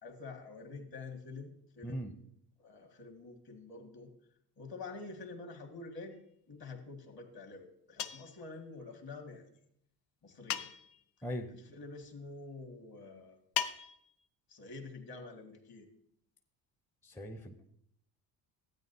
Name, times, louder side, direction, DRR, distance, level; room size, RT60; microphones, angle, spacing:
voice 1, 0.0-2.2 2.6-4.1 4.6-6.1 6.5-9.5 10.2-10.7 11.5-13.4 14.5-15.9, left 3 dB, 45° left, 4 dB, 2.0 m, -47 dB
voice 2, 1.8-2.1 11.2-11.5 17.0-17.7, equal, 5° left, 6 dB, 0.6 m, -40 dB
sound 1, 8.0-8.4 10.5-11.0 13.6-14.2, left 9 dB, 80° left, 0.6 m, -37 dB
13.0 x 8.7 x 2.7 m, 0.73 s
hypercardioid pair, 65°, 49 cm